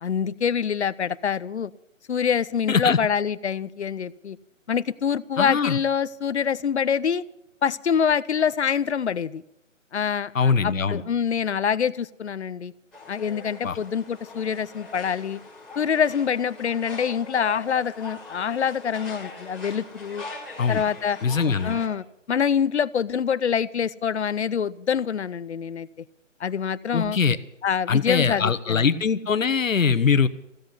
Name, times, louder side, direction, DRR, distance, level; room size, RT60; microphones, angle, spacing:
voice 1, 0.0-1.7 2.1-4.4 4.7-7.2 7.6-9.4 9.9-12.7 13.1-15.4 15.8-20.2 20.7-21.2 21.6-25.9 26.4-27.2 27.6-28.9, left 7 dB, 60° left, 18 dB, 0.7 m, -25 dB
voice 2, 2.7-3.0 5.4-5.8 10.3-11.0 13.6-13.8 20.6-20.8 21.2-21.8 26.9-27.4 27.9-30.3, left 5 dB, 75° left, 12 dB, 1.2 m, -22 dB
sound 1, 12.9-21.9, left 2 dB, ahead, 2.0 m, -41 dB
15.5 x 8.1 x 9.7 m, 0.81 s
figure-of-eight pair, 155°, 39 cm